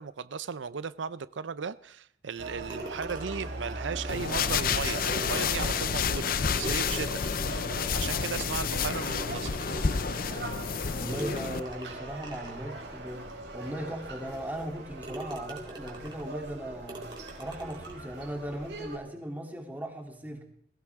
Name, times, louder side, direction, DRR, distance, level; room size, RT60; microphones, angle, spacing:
voice 1, 0.0-7.2 7.9-9.5, right 6 dB, 90° right, 0.6 m, -36 dB
sound 1, 2.4-19.0, right 2 dB, 70° right, 4.4 m, -41 dB
sound 2, 2.7-3.7 4.7-4.8 5.0-7.6 8.2-8.3 9.0-10.0 11.1-12.6 13.3-13.4 13.9-14.0 14.5-14.7 15.0-16.3 16.9-18.0, right 1 dB, 25° right, 3.9 m, -44 dB
sound 3, 4.1-11.6, left 6 dB, 50° left, 0.6 m, -30 dB
voice 2, 10.9-13.3 13.5-17.0 17.4-20.4, right 1 dB, 10° right, 2.9 m, -38 dB
21.5 x 16.5 x 3.6 m
head